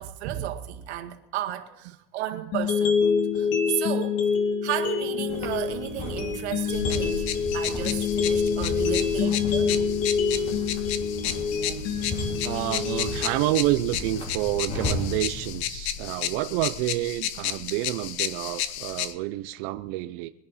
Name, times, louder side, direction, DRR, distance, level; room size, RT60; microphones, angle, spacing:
voice 1, 0.0-4.2 4.6-9.9, right 13 dB, 90° right, 1.9 m, -33 dB
sound 1, 2.5-14.5, left 6 dB, 50° left, 2.3 m, -27 dB
sound 2, 5.3-15.6, left 1 dB, 20° left, 3.1 m, -36 dB
sound 3, 6.7-19.1, left 10 dB, 90° left, 1.1 m, -33 dB
voice 2, 11.5-20.3, right 16 dB, 50° right, 0.6 m, -29 dB
22.0 x 11.0 x 4.2 m
supercardioid pair, 160°, 32 cm